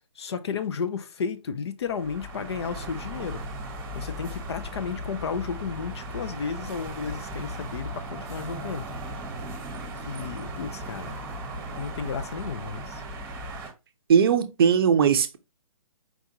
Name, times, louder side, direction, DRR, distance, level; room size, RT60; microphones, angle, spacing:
voice 1, 0.2-3.4 3.9-8.9 9.9-11.2 11.7-13.0, left 6 dB, 50° left, 0.6 m, -33 dB
sound 1, 1.8-13.7, right 1 dB, 15° right, 1.0 m, -37 dB
voice 2, 14.1-15.4, right 7 dB, 40° right, 0.6 m, -19 dB
4.7 x 3.5 x 2.7 m
figure-of-eight pair, 140°, 18 cm